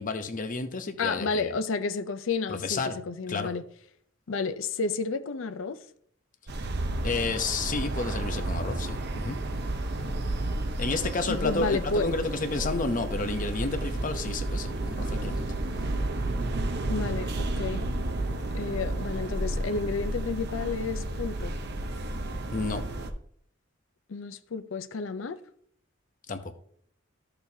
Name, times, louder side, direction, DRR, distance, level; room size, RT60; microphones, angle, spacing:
voice 1, 0.0-1.5 2.6-3.0 3.3-3.5 7.0-9.4 10.8-15.5 22.5-22.8 26.3-26.5, left 3 dB, 45° left, 0.8 m, -31 dB
voice 2, 1.0-3.6 4.3-5.8 11.3-12.1 16.9-17.9 18.5-21.6 24.1-25.4, left 4 dB, 80° left, 0.5 m, -31 dB
sound 1, 6.5-23.1, right 1 dB, 60° right, 0.8 m, -31 dB
12.5 x 6.8 x 2.8 m
head